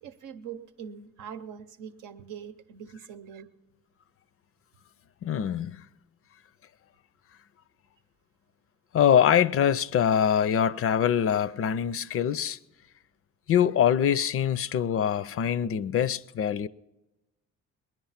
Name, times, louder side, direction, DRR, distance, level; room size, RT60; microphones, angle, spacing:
voice 1, 0.0-3.5, right 8 dB, 85° right, 0.8 m, -43 dB
voice 2, 5.2-5.8 8.9-12.6 13.5-16.7, left 9 dB, 50° left, 0.4 m, -24 dB
19.5 x 10.5 x 5.7 m
cardioid pair, 90°, 30 cm